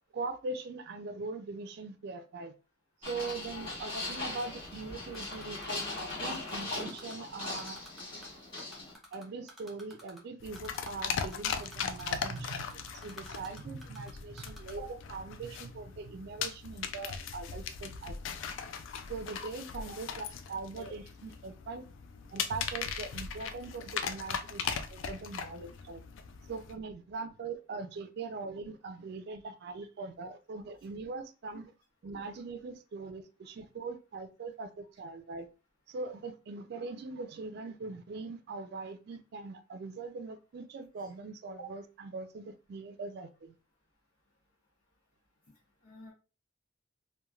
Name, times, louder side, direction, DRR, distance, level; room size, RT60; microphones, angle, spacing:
voice 1, 0.1-2.5 3.0-7.8 9.1-18.2 19.1-21.8 22.3-26.0 26.5-31.7 32.0-35.5 35.9-43.5, right 3 dB, 55° right, 0.3 m, -41 dB
sound 1, 3.0-8.9, left 2 dB, 30° left, 1.2 m, -39 dB
Typing, 5.1-7.1 7.4-8.3 8.6-10.2 10.5-10.9 11.2-14.1 14.4-14.7, equal, ahead, 0.6 m, -51 dB
voice 2, 6.2-6.3 10.7-10.8 14.7-14.9 17.3-17.4 20.8-20.9 41.0-41.1 41.6-41.7 45.8-46.1, right 3 dB, 45° left, 0.9 m, -46 dB
sound 2, 10.4-26.7, left 6 dB, 75° left, 0.3 m, -39 dB
3.0 x 2.1 x 2.3 m
head